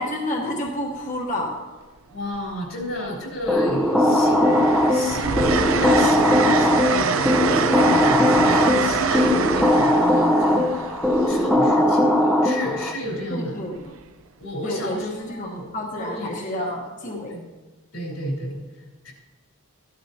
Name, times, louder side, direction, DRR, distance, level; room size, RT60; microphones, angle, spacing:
voice 1, 0.0-1.5 13.3-13.9 14.6-17.4, left 1 dB, 35° left, -1 dB, 1.2 m, -29 dB
Train, 0.7-1.0 2.3-3.0 3.4-12.2 13.8-14.0, right 5 dB, 75° right, 0.6 m, -26 dB
voice 2, 2.1-11.0 11.3-13.6 14.4-15.6 16.0-16.7 17.3-17.4 17.9-18.6 19.0-19.1, equal, 80° left, -3 dB, 3.6 m, -32 dB
sound 1, 3.5-12.9, left 1 dB, ahead, 0.7 m, -19 dB
14.0 x 12.0 x 2.8 m, 1.2 s
head